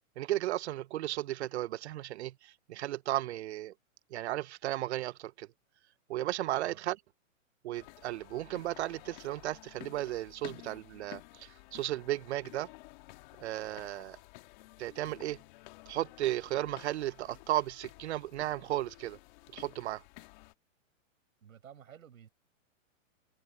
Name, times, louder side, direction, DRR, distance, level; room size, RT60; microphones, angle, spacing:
voice 1, 0.2-3.7 4.1-5.5 6.1-7.0 7.6-12.7 13.4-14.2 14.8-15.4 15.9-19.2 19.5-20.0, right 14 dB, 55° right, 0.5 m, -35 dB
sound 1, 7.7-20.5, left 21 dB, 35° left, 1.8 m, -53 dB
voice 2, 21.4-22.3, right 9 dB, 85° right, 6.3 m, -53 dB
hypercardioid pair, 160°, 40 cm